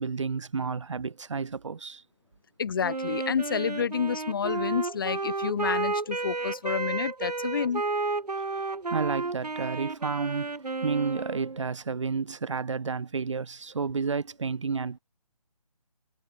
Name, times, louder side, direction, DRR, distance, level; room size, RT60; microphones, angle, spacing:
voice 1, 0.0-2.0 8.5-15.0, right 5 dB, 50° right, 1.4 m, -31 dB
voice 2, 2.6-7.8, left 6 dB, 35° left, 4.2 m, -29 dB
Wind instrument woodwind instrument, 2.8-11.7, right 3 dB, 90° right, 4.4 m, -32 dB
hypercardioid pair, 170°, 20 cm